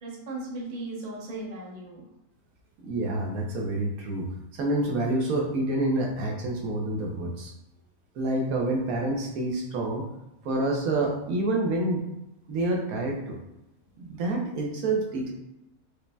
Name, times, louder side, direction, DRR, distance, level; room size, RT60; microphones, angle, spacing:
voice 1, 0.0-2.1, right 2 dB, 35° right, -4 dB, 0.9 m, -37 dB
voice 2, 2.8-7.5 8.2-10.0 10.4-12.0 12.5-13.4 14.0-15.3, right 2 dB, 80° right, 0 dB, 1.2 m, -28 dB
4.9 x 2.7 x 2.2 m, 0.90 s
omnidirectional pair, 1.5 m